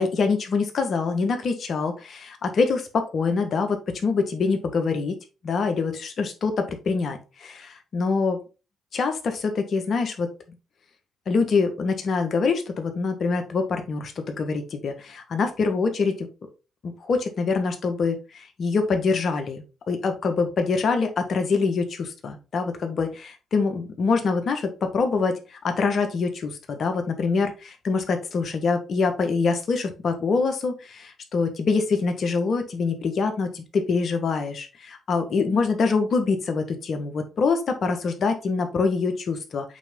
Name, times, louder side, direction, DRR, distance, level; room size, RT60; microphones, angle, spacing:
voice 1, 0.0-5.2 5.4-8.4 8.9-10.3 11.3-16.3 17.1-39.8, left 4 dB, 60° left, 6 dB, 1.5 m, -25 dB
8.2 x 3.4 x 3.8 m, 0.31 s
supercardioid pair, 60°, 0 cm